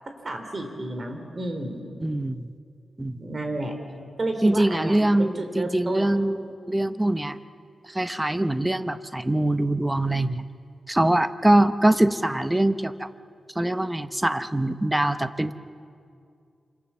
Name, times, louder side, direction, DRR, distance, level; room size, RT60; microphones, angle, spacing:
voice 1, 0.2-1.8 3.2-3.7 4.2-6.2 12.1-12.2, right 2 dB, 35° right, 5 dB, 3.6 m, -31 dB
voice 2, 2.0-2.5 3.0-3.2 4.4-6.4 6.7-7.4 7.9-10.4 10.9-13.1 13.6-15.5, right 1 dB, 10° right, 11 dB, 0.7 m, -23 dB
27.5 x 26.0 x 7.2 m, 2.4 s
wide cardioid pair, 145°, 0 cm